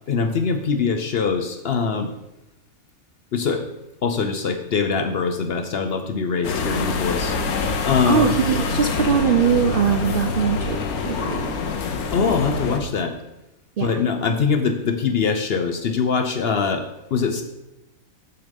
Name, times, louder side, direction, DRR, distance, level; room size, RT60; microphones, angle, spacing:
voice 1, 0.1-2.1 3.3-3.6 4.0-7.4 7.8-8.4 12.1-13.2 13.8-16.8 17.1-17.4, left 5 dB, 55° left, 7 dB, 0.7 m, -22 dB
sound 1, 6.4-12.8, left 4 dB, 90° left, 1.4 m, -25 dB
voice 2, 8.1-11.5 13.8-14.0, right 7 dB, 65° right, 6 dB, 0.5 m, -21 dB
7.0 x 6.7 x 5.1 m, 0.94 s
omnidirectional pair, 1.5 m